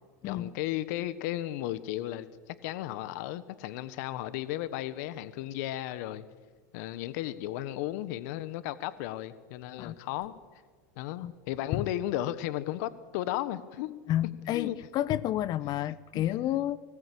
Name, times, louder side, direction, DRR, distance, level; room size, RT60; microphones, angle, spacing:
voice 1, 0.2-6.3 6.7-10.3 11.0-14.8 16.1-16.2, left 14 dB, 65° left, 15 dB, 1.3 m, -35 dB
voice 2, 14.1-16.8, left 13 dB, 45° left, 18 dB, 1.0 m, -30 dB
25.0 x 19.5 x 8.5 m, 1.5 s
hypercardioid pair, 105°, 10 cm